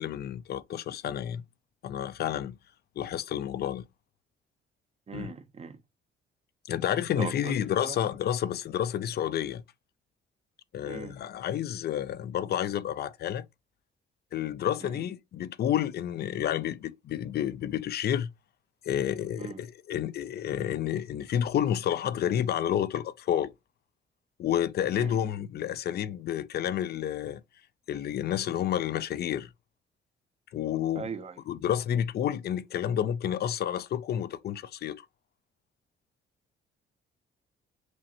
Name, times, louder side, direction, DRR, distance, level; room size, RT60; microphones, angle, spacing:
voice 1, 0.0-1.4 1.8-2.6 3.0-3.8 5.1-5.3 6.7-9.6 10.7-13.5 14.3-18.3 18.9-23.5 24.4-27.4 27.9-29.5 30.5-31.1 31.5-35.0, left 10 dB, 55° left, 0.4 m, -30 dB
voice 2, 5.1-5.8 7.2-7.5 7.8-8.0 10.8-11.1 14.8-15.0 19.4-19.6 24.9-25.2 31.0-31.4, right 5 dB, 30° right, 0.6 m, -39 dB
6.0 x 2.1 x 2.8 m
cardioid pair, 90°, 20 cm